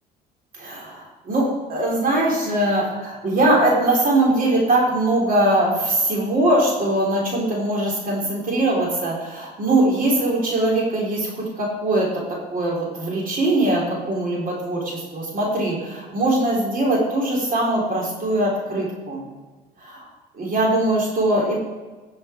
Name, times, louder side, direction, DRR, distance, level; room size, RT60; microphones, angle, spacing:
voice 1, 0.5-19.2 19.8-20.1 20.3-21.6, right 1 dB, 40° right, -2 dB, 3.9 m, -21 dB
14.0 x 7.1 x 4.6 m, 1.3 s
supercardioid pair, 90°, 21 cm